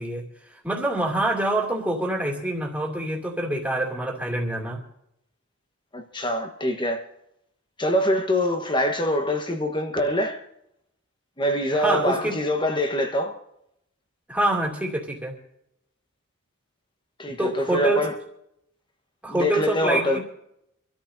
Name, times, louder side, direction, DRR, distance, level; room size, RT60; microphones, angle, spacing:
voice 1, 0.0-4.8 11.7-12.4 14.3-15.3 17.3-18.1 19.2-20.2, right 1 dB, 5° right, 2.7 m, -26 dB
voice 2, 5.9-7.0 7.8-10.4 11.4-13.4 17.2-18.2 19.3-20.2, left 1 dB, 20° left, 1.3 m, -24 dB
26.0 x 13.5 x 2.7 m
head